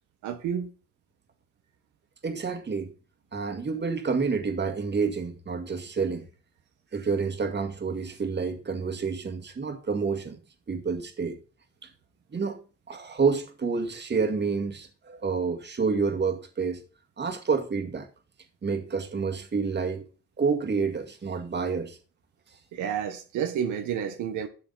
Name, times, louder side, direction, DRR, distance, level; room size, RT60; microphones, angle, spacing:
voice 1, 0.2-0.7 22.7-24.5, right 8 dB, 85° right, 1.3 m, -30 dB
voice 2, 2.2-2.9 3.3-6.3 6.9-10.4 10.7-11.4 11.8-11.9 12.3-12.6 12.9-16.8 17.2-18.1 18.6-20.0 20.4-22.0, right 5 dB, 35° right, 2.0 m, -28 dB
12.0 x 6.8 x 4.1 m
cardioid pair, 90°, 30 cm